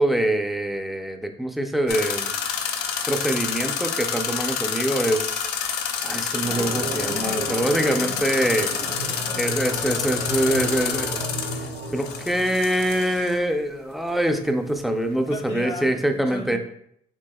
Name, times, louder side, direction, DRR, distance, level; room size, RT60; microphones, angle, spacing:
voice 1, 0.0-2.4 3.1-5.5 6.0-8.7 9.4-11.2 11.9-16.6, right 1 dB, ahead, 5 dB, 0.4 m, -24 dB
sound 1, 1.9-13.3, left 7 dB, 75° left, 0.6 m, -28 dB
sound 2, 6.4-13.2, right 1 dB, 90° right, 1.8 m, -33 dB
voice 2, 8.7-10.9 15.1-16.6, left 1 dB, 35° left, 3 dB, 0.9 m, -38 dB
6.3 x 3.3 x 2.3 m, 0.70 s
cardioid pair, 110°, 17 cm